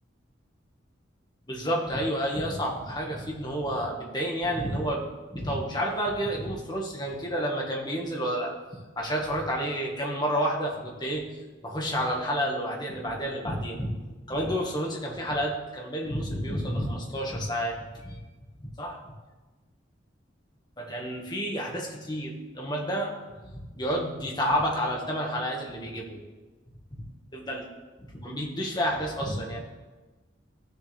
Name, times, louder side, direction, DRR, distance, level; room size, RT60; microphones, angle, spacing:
voice 1, 1.5-8.5 9.0-11.3 11.6-14.0 14.3-18.2 18.6-19.0 20.8-23.1 23.5-26.2 27.3-27.7 28.0-29.6, equal, 20° left, -1 dB, 1.6 m, -30 dB
16.5 x 6.7 x 3.4 m, 1.2 s
head